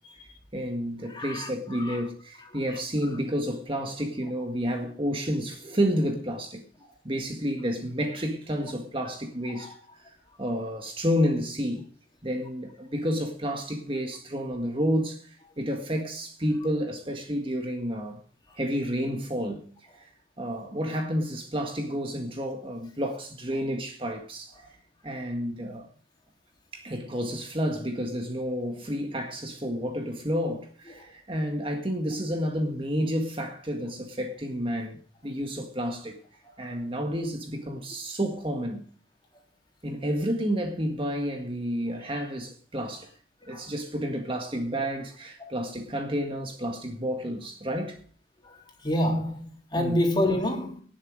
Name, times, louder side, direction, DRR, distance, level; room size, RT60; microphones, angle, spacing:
voice 1, 0.5-6.6 7.0-9.7 10.4-11.8 12.2-18.2 18.6-19.7 20.4-24.5 25.0-25.9 26.7-36.2 36.6-38.8 39.8-43.1 43.5-48.0 49.8-50.0, equal, 30° right, 1.7 m, -30 dB
voice 2, 1.1-2.0 2.7-2.8 6.8-6.9 9.5-9.7 30.9-31.0 43.4-43.7 45.4-45.5 48.4-50.8, left 1 dB, 25° left, 3.4 m, -29 dB
18.5 x 7.5 x 5.0 m
head